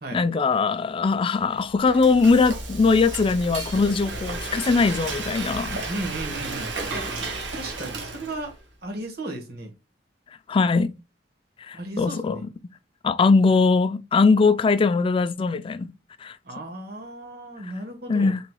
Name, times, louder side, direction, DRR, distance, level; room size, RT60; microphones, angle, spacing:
voice 1, 0.1-5.8 10.5-10.9 11.6-12.5 13.0-15.9 16.2-16.4 18.1-18.4, left 4 dB, 30° left, 0.3 m, -21 dB
Frying (food), 1.5-8.6, right 3 dB, 80° right, 1.2 m, -33 dB
voice 2, 5.9-7.1 7.5-8.5 8.8-9.7 11.7-12.4 16.4-18.3, right 1 dB, 55° right, 1.4 m, -35 dB
4.5 x 3.9 x 2.2 m
head